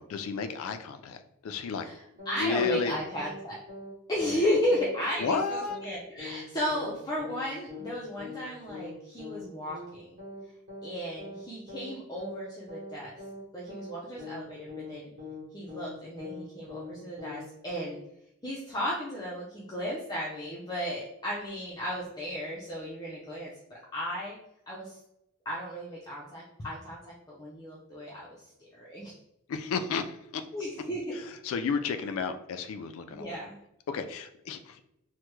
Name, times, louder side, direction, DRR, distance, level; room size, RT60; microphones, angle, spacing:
voice 1, 0.0-1.8 2.4-3.0 5.2-5.8 29.5-30.4 31.1-33.4 33.9-34.8, left 5 dB, 90° left, 9 dB, 0.3 m, -32 dB
voice 2, 1.8-3.6 4.1-10.1 10.8-13.1 13.5-15.1 15.5-18.0 18.4-23.5 23.9-24.4 24.7-25.0 25.5-28.3 28.6-29.1 30.5-31.1 33.1-33.6, equal, 20° left, -5 dB, 0.5 m, -34 dB
sound 1, 2.2-2.4 2.7-2.9 3.2-3.4 3.7-3.9 4.2-4.4 4.7-4.9 5.2-5.4 5.7-5.9 6.2-6.4 6.7-6.9 7.2-7.4 7.7-7.9 8.2-8.4 8.7-8.9 9.2-9.4 9.7-9.9 10.2-10.4 10.7-10.9 11.2-11.4 11.7-11.9 12.2-12.4 12.7-12.9 13.2-13.4 13.7-13.9 14.2-14.4 14.7-14.9 15.2-15.4 15.7-15.9 16.2-16.4 16.7-16.9 17.2-17.4 17.7-17.9, left 2 dB, 45° right, 1.2 m, -42 dB
3.3 x 2.1 x 3.0 m, 0.83 s
head